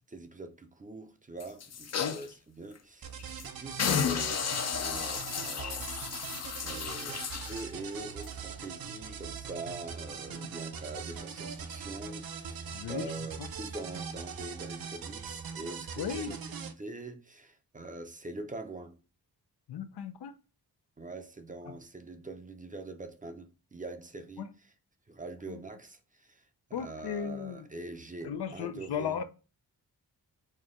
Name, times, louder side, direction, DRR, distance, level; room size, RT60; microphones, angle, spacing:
voice 1, 0.1-16.4 16.8-19.0 21.0-24.7 25.1-26.4 26.7-29.2, right 2 dB, 20° right, 0.5 m, -44 dB
sound 1, 1.4-2.3 2.7-2.8 3.2-3.4 3.8-7.7 8.2-8.3, left 7 dB, 45° left, 0.5 m, -33 dB
sound 2, 3.0-16.7, right 6 dB, 65° right, 0.6 m, -41 dB
voice 2, 12.7-13.1 13.4-13.5 16.0-16.4 19.7-20.3 21.7-21.8 24.4-24.5 25.5-25.6 26.7-27.6 28.2-29.2, left 8 dB, 90° left, 0.6 m, -36 dB
4.3 x 2.2 x 3.6 m
wide cardioid pair, 110°, 39 cm